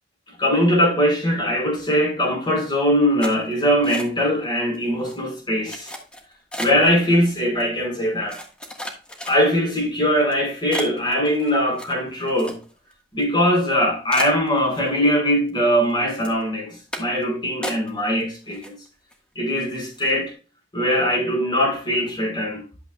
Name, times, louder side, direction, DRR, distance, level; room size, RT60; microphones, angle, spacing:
voice 1, 0.4-5.9 6.6-8.4 9.3-12.6 13.1-18.8 19.3-20.3 20.7-22.6, equal, 25° left, 4.9 m, -21 dB
sound 1, 3.2-4.4 4.7-5.1 5.7-6.9 7.6-7.7 8.3-9.7 10.2-10.3 10.7-12.9 13.2-13.3 13.7-13.8 14.1-15.2 15.5-15.9 16.2-16.4 16.9-17.2 17.6-18.2 18.5-19.1 19.5-19.6 19.9-20.2, equal, 5° left, 1.5 m, -35 dB
11.5 x 7.2 x 2.3 m
head